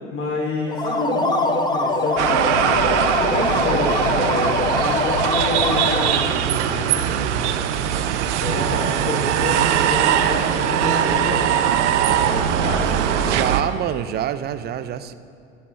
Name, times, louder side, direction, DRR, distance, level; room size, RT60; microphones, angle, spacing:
voice 1, 0.1-2.8 3.2-13.4, left 2 dB, 35° left, -4 dB, 3.3 m, -28 dB
sound 1, 0.7-6.4, left 2 dB, 10° left, 1.1 m, -23 dB
sound 2, 2.2-13.6, right 10 dB, 60° right, 0.8 m, -21 dB
voice 2, 13.2-15.1, right 10 dB, 25° right, 12 dB, 0.5 m, -26 dB
22.5 x 9.6 x 3.4 m, 2.5 s
figure-of-eight pair, 80°, 39 cm